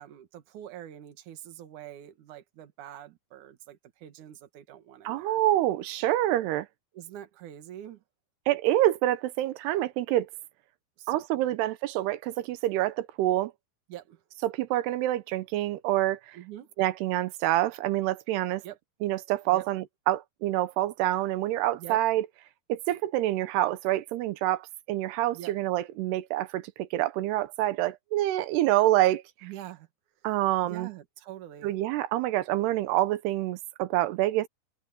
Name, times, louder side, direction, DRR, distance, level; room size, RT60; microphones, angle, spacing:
voice 1, 0.0-5.4 6.9-8.0 11.0-11.6 13.9-14.2 16.3-16.7 18.6-18.8 19.5-19.7 21.8-22.0 25.3-25.5 29.4-29.9 30.6-31.7, right 12 dB, 55° right, 2.8 m, -45 dB
voice 2, 5.0-6.7 8.5-10.3 11.1-13.5 14.4-16.4 16.8-18.6 19.0-22.3 22.7-29.2 30.2-30.9 31.6-34.5, right 14 dB, 90° right, 3.0 m, -27 dB
omnidirectional pair, 4.6 m